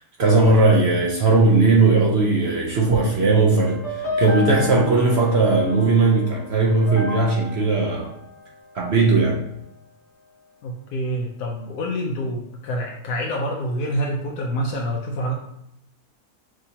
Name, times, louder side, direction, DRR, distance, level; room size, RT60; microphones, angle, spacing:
voice 1, 0.0-8.1 8.7-9.4, right 3 dB, 55° right, -1 dB, 0.8 m, -18 dB
sound 1, 3.6-9.0, left 3 dB, 50° left, 1.1 m, -32 dB
voice 2, 10.6-15.3, equal, 85° left, -1 dB, 1.2 m, -27 dB
6.1 x 2.8 x 2.8 m, 0.78 s
omnidirectional pair, 1.6 m